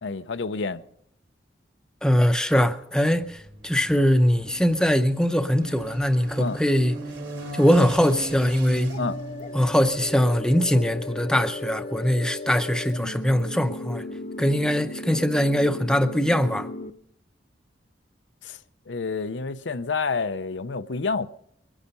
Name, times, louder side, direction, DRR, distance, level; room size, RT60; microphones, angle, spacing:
voice 1, 0.0-0.8 6.4-6.6 9.0-9.2 18.4-18.6 18.9-21.3, left 4 dB, 85° left, 0.7 m, -28 dB
voice 2, 2.0-6.9 7.5-8.9 9.5-14.0 14.4-16.7, equal, 5° left, 0.7 m, -22 dB
sound 1, 3.1-10.7, equal, 80° right, 3.7 m, -36 dB
sound 2, 8.9-16.9, left 2 dB, 40° left, 0.7 m, -36 dB
22.5 x 9.9 x 5.4 m
head